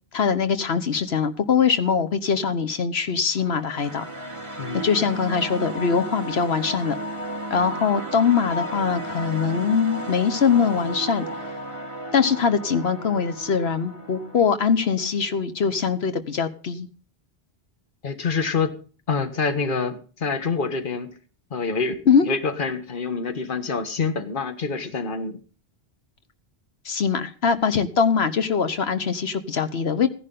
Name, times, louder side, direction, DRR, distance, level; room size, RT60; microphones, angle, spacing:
voice 1, 0.1-4.1 4.7-7.0 7.5-11.2 12.1-16.9 22.1-22.3 26.8-30.1, left 6 dB, 80° left, 10 dB, 1.3 m, -22 dB
sound 1, 3.3-14.4, right 1 dB, 30° right, 2.3 m, -34 dB
voice 2, 18.0-18.7 19.1-21.1 21.5-25.4, left 4 dB, 55° left, 8 dB, 1.5 m, -26 dB
15.5 x 11.0 x 3.8 m, 0.37 s
omnidirectional pair, 1.1 m